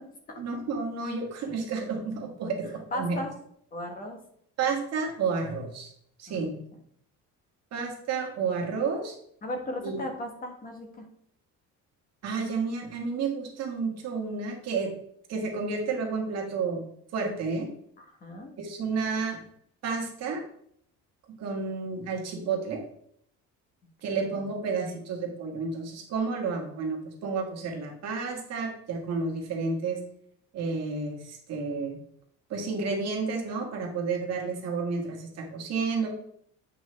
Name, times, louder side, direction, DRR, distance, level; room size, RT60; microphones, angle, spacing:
voice 1, 0.4-3.2 4.6-5.9 6.2-6.6 7.7-9.1 9.8-10.0 12.2-14.9 15.3-16.8 17.1-17.7 18.6-19.4 19.8-20.4 21.4-22.8 24.0-30.0 30.5-32.0 32.5-36.1, right 4 dB, 50° right, 0 dB, 1.8 m, -31 dB
voice 2, 2.6-3.3 3.7-4.2 6.3-6.6 9.4-11.0 18.0-18.5 24.1-24.2, left 1 dB, 25° left, 3 dB, 1.3 m, -36 dB
8.4 x 5.3 x 3.3 m, 0.67 s
cardioid pair, 170°, 33 cm